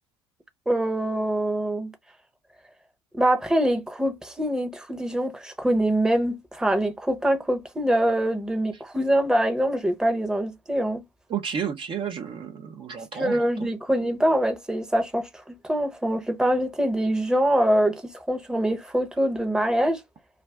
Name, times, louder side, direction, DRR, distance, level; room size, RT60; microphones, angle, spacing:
voice 1, 0.7-1.9 3.1-11.0 13.1-20.0, right 1 dB, 5° right, 0.8 m, -24 dB
voice 2, 11.3-13.5, right 7 dB, 35° right, 0.6 m, -31 dB
2.4 x 2.2 x 3.3 m
hypercardioid pair, 80°, 14 cm